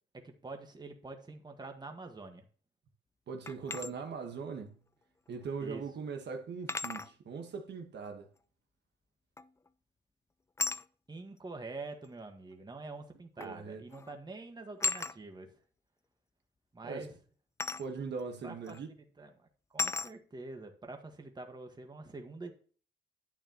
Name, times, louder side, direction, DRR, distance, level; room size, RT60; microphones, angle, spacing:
voice 1, 0.1-2.4 5.6-5.8 11.1-15.5 16.7-17.1 18.4-18.8 19.2-19.5 19.7-22.5, right 3 dB, 20° right, 1.7 m, -46 dB
voice 2, 3.3-4.8 5.3-8.3 13.4-13.8 16.8-17.1 17.8-18.9, right 5 dB, 60° right, 1.5 m, -40 dB
sound 1, 3.5-3.9 5.4-5.5 6.7-7.1 9.4-9.7 10.6-10.9 12.0-12.1 13.4-13.6 13.9-14.2 14.8-15.2 17.6-17.9 18.7-18.8 19.8-20.1, left 3 dB, 15° left, 0.3 m, -35 dB
10.0 x 8.8 x 3.0 m
cardioid pair, 90°, 20 cm